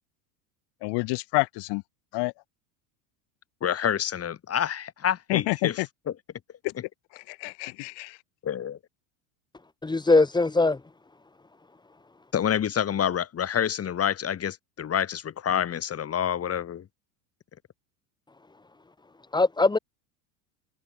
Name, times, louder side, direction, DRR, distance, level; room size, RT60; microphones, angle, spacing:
voice 1, 0.8-1.8 2.1-2.3 5.3-5.9 7.1-8.2, left 28 dB, 65° left, 4.3 m, -28 dB
voice 2, 3.6-6.2 6.7-6.8 8.4-8.8 12.3-16.9, left 9 dB, 30° left, 4.0 m, -28 dB
voice 3, 9.8-10.8 19.3-19.8, left 3 dB, 10° left, 1.5 m, -21 dB
supercardioid pair, 115°, 45 cm